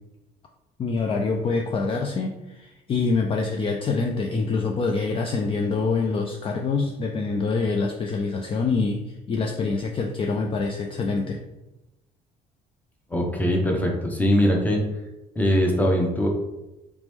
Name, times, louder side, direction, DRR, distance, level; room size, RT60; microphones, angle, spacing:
voice 1, 0.8-11.4, left 4 dB, 35° left, 2 dB, 0.3 m, -25 dB
voice 2, 13.1-14.8 15.3-16.3, equal, 10° left, 1 dB, 0.7 m, -21 dB
3.1 x 3.0 x 3.4 m, 0.97 s
cardioid pair, 110°, 17 cm